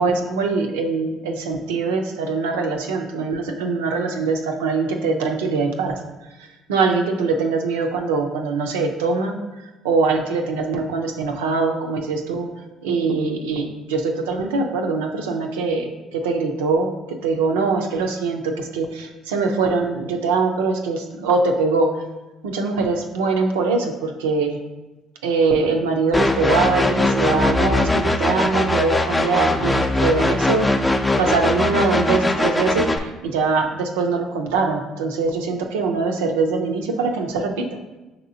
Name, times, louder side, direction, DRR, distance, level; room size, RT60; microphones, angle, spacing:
voice 1, 0.0-6.0 6.7-9.4 9.8-12.5 12.8-21.9 22.4-24.6 25.2-30.9 31.2-37.8, right 4 dB, 90° right, 4 dB, 0.4 m, -22 dB
sound 1, 26.1-33.0, left 2 dB, 20° left, 0.4 m, -20 dB
5.8 x 2.9 x 2.6 m, 1.1 s
hypercardioid pair, 65°, 0 cm